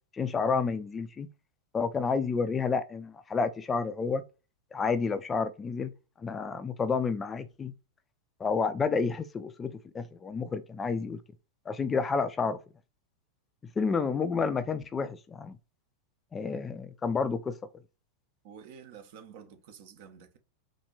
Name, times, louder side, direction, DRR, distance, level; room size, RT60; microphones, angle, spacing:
voice 1, 0.1-1.3 1.7-4.2 4.7-5.9 6.2-7.7 8.4-11.2 11.7-12.6 13.8-15.6 16.3-17.6, left 5 dB, 20° left, 0.4 m, -30 dB
voice 2, 18.4-20.4, right 7 dB, 50° right, 0.9 m, -50 dB
4.3 x 3.0 x 3.9 m
figure-of-eight pair, 90°, 0 cm